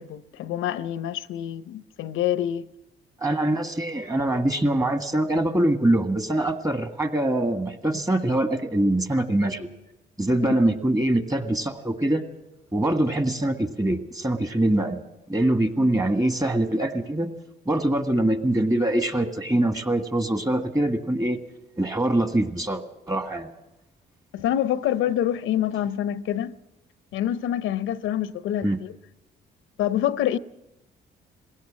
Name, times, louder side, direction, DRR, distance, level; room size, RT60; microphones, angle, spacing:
voice 1, 0.0-2.7 10.4-10.5 15.8-15.9 24.3-26.5 27.1-28.9 29.8-30.4, left 11 dB, 85° left, 0.7 m, -26 dB
voice 2, 3.2-9.7 10.2-12.2 12.7-15.0 15.3-17.3 17.7-21.4 21.8-23.5 28.6-28.8, right 1 dB, 20° right, 1.7 m, -23 dB
21.0 x 16.5 x 7.4 m
cardioid pair, 90°, 20 cm